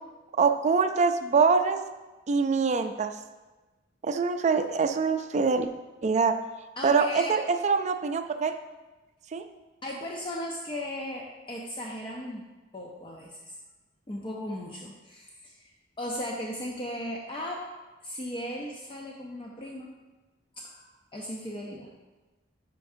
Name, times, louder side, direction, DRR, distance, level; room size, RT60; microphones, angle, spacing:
voice 1, 0.4-1.8 2.3-3.1 4.0-5.7 6.0-6.3 6.8-8.5 9.3-9.4, right 5 dB, 40° right, 8 dB, 0.4 m, -24 dB
voice 2, 6.8-7.4 9.8-12.5 12.7-13.6 14.1-15.7 16.0-17.6 18.0-19.9 20.6-21.9, left 1 dB, 25° left, -2 dB, 0.5 m, -37 dB
9.8 x 4.5 x 2.6 m, 1.2 s
head